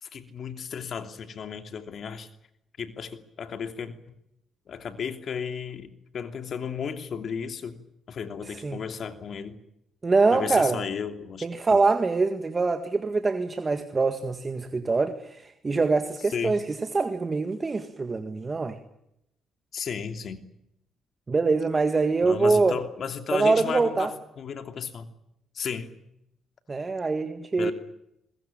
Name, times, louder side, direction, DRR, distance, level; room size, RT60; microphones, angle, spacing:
voice 1, 0.0-2.3 2.8-3.9 4.7-7.8 8.1-9.5 10.3-11.5 11.7-11.8 16.3-16.6 19.7-20.4 22.2-25.1 25.5-25.9 27.6-27.7, left 7 dB, 55° left, 2.9 m, -34 dB
voice 2, 10.0-10.8 11.4-18.8 21.3-22.8 23.3-24.1 26.7-27.7, right 3 dB, 30° right, 1.8 m, -24 dB
22.5 x 21.0 x 9.0 m
cardioid pair, 90°, 0 cm